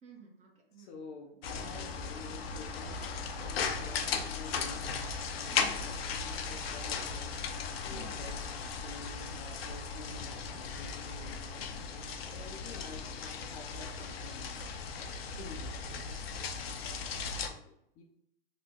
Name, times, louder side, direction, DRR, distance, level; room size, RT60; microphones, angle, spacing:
voice 1, 0.0-1.0 5.5-5.9 7.9-8.5 12.6-12.8 15.3-15.6 16.5-16.6 17.0-17.3, right 5 dB, 25° right, 1 dB, 0.6 m, -54 dB
voice 2, 0.8-4.9 5.4-7.3 7.8-8.3 8.8-11.7 12.2-14.6 15.4-16.0 17.5-18.0, left 4 dB, 30° left, 1 dB, 0.4 m, -50 dB
sound 1, 1.4-17.5, left 5 dB, 80° left, 0.5 m, -37 dB
2.9 x 2.0 x 3.5 m, 0.77 s
hypercardioid pair, 115°, 30 cm